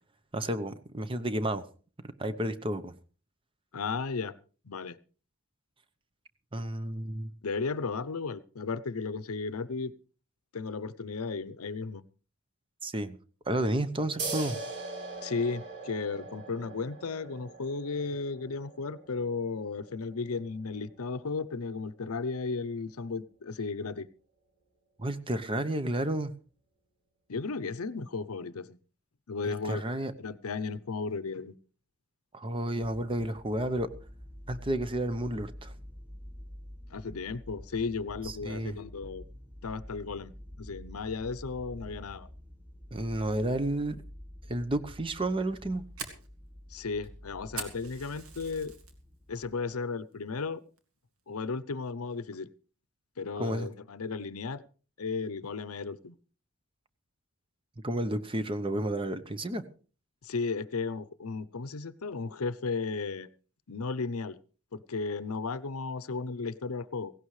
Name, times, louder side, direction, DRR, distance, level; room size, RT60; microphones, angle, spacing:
voice 1, 0.3-1.6 2.2-2.9 6.5-7.3 12.8-13.2 13.5-14.6 25.0-26.3 29.4-30.1 32.3-33.9 34.5-35.7 38.2-38.8 42.9-44.0 44.5-45.8 53.4-53.7 57.8-59.6, right 1 dB, 25° right, 11 dB, 0.8 m, -31 dB
voice 2, 3.7-4.3 4.6-5.0 7.4-9.9 10.5-12.0 15.2-24.1 27.3-28.8 29.3-29.8 30.2-31.6 36.9-39.2 39.6-40.3 40.6-42.3 46.7-48.7 49.3-50.6 51.3-52.5 53.2-54.6 55.0-56.2 60.2-63.3 63.7-64.4 64.7-67.1, left 4 dB, 85° left, 16 dB, 0.7 m, -34 dB
sound 1, 14.2-21.3, right 3 dB, 55° right, 5.6 m, -42 dB
sound 2, 32.8-49.6, equal, 5° right, 6.6 m, -48 dB
Fire, 45.4-48.9 49.3-49.7 50.1-50.2 50.8-51.1, right 5 dB, 80° right, 2.4 m, -43 dB
17.5 x 16.5 x 3.2 m, 0.39 s
head